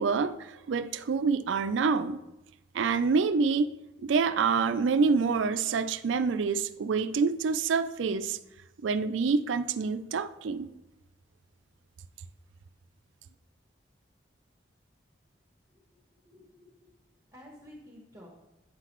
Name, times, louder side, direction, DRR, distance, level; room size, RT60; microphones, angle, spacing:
voice 1, 0.0-2.2 2.7-3.7 4.0-8.4 8.8-10.7, right 5 dB, 90° right, 13 dB, 0.4 m, -27 dB
voice 2, 16.2-16.9 17.3-18.4, left 1 dB, 15° right, -3 dB, 1.2 m, -51 dB
9.0 x 5.8 x 3.0 m, 0.94 s
head